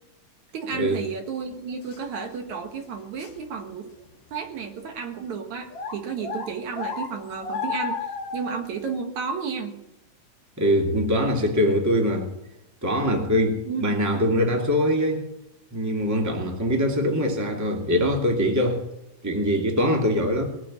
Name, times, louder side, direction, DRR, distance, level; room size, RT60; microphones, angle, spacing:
voice 1, 0.5-3.9 4.3-8.1 8.3-9.8 13.6-13.9 20.2-20.5, right 6 dB, 70° right, 2.8 m, -32 dB
sound 1, 1.9-2.0 2.5-2.6 3.2-3.4 4.0-4.1 4.8-4.9 5.7-8.7, left 5 dB, 45° left, 1.8 m, -32 dB
voice 2, 10.6-12.3 12.8-15.2 15.7-18.8 19.2-20.4, equal, 5° right, 1.9 m, -23 dB
20.0 x 7.4 x 9.8 m
omnidirectional pair, 3.6 m